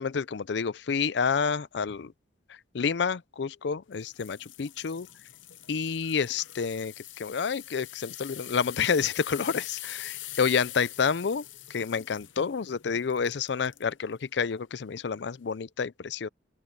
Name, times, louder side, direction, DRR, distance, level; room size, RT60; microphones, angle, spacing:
voice 1, 0.0-2.1 2.7-5.1 5.7-11.4 11.7-16.3, left 6 dB, 65° left, 0.5 m, -29 dB
sound 1, 4.0-13.9 14.4-14.6 15.2-15.3, left 15 dB, 85° left, 0.9 m, -44 dB
open air
head